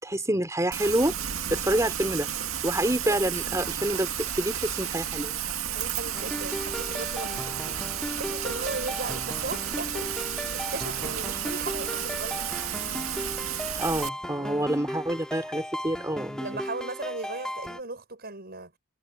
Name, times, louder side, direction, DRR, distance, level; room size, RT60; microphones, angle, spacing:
voice 1, 0.0-1.1 1.5-2.3 2.6-5.3 13.8-16.4, right 1 dB, 15° right, 3.6 m, -27 dB
Rain, 0.7-14.1, right 9 dB, 90° right, 1.9 m, -32 dB
voice 2, 5.7-7.6 7.9-10.1 10.5-12.5 14.4-14.7 16.4-18.7, right 3 dB, 50° right, 7.0 m, -37 dB
sound 1, 6.1-17.8, equal, 5° left, 3.3 m, -36 dB
head